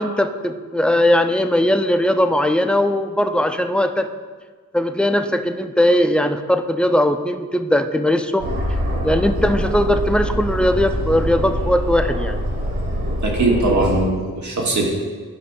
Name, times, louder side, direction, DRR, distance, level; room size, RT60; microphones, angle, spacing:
voice 1, 0.0-4.1 4.7-8.5 9.0-12.4, left 1 dB, 5° left, 7 dB, 0.5 m, -19 dB
Aircraft, 8.4-14.0, equal, 90° right, 1.3 m, -24 dB
voice 2, 13.2-14.9, right 2 dB, 55° right, -1 dB, 1.5 m, -20 dB
12.5 x 5.1 x 2.3 m, 1.5 s
cardioid pair, 40°, 35 cm